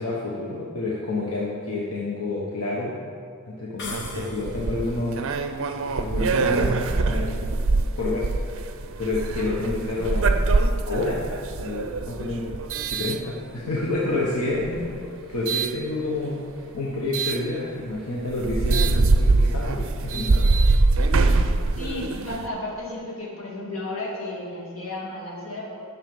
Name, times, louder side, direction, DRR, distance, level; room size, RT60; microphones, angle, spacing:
voice 1, 0.0-3.0 3.5-5.3 6.0-6.8 7.0-7.4 8.0-8.3 9.0-10.5 10.8-11.2 11.6-12.5 12.8-15.0 15.2-20.5, left 2 dB, 85° left, -5 dB, 1.3 m, -29 dB
sound 1, 3.8-4.9, left 4 dB, 50° left, 1.1 m, -38 dB
sound 2, 3.8-13.9 14.5-15.8 17.1-17.4 17.9-18.0 18.3-22.5, right 3 dB, 60° right, 0.6 m, -23 dB
voice 2, 21.7-25.8, left 1 dB, 65° left, -4 dB, 2.4 m, -33 dB
10.5 x 6.6 x 5.5 m, 2.3 s
head